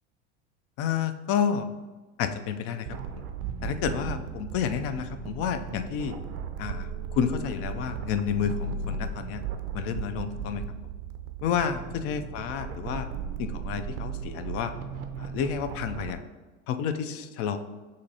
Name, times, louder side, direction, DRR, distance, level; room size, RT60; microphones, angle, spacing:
voice 1, 0.8-1.7 2.2-2.9 3.6-6.2 6.6-9.4 9.7-10.6 11.4-13.1 13.4-14.7 15.2-16.2 16.7-17.6, left 8 dB, 40° left, 9 dB, 0.4 m, -30 dB
sound 1, 2.9-16.1, right 5 dB, 40° right, 0.5 m, -36 dB
6.3 x 2.7 x 2.7 m, 1.3 s
hypercardioid pair, 90°, 38 cm